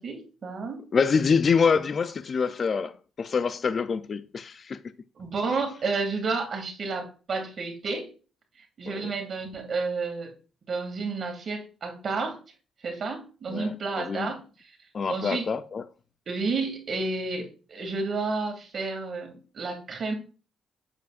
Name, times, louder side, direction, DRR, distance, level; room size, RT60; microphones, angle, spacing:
voice 1, 0.0-0.8 5.2-8.1 8.8-10.3 10.7-12.4 12.8-14.4 15.1-15.5 16.3-20.1, right 4 dB, 50° right, 2.4 m, -31 dB
voice 2, 0.9-2.9 3.2-4.8 8.9-9.1 13.5-14.3 14.9-15.8, left 5 dB, 45° left, 0.4 m, -25 dB
8.2 x 7.1 x 2.5 m
cardioid pair, 90°, 0 cm